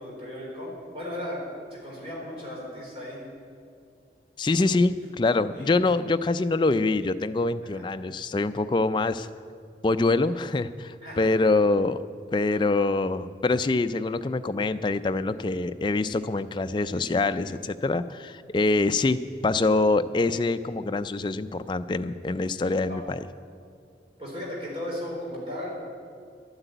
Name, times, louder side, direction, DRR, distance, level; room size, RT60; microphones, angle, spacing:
voice 1, 0.0-1.4 1.7-3.2 5.5-5.7 7.7-7.8 11.0-11.4 22.9-23.0 24.2-25.7, left 1 dB, 30° right, -4 dB, 4.3 m, -36 dB
voice 2, 4.4-9.3 9.8-12.0 12.3-23.2, left 3 dB, 25° left, 11 dB, 0.3 m, -25 dB
12.0 x 8.0 x 9.1 m, 2.3 s
head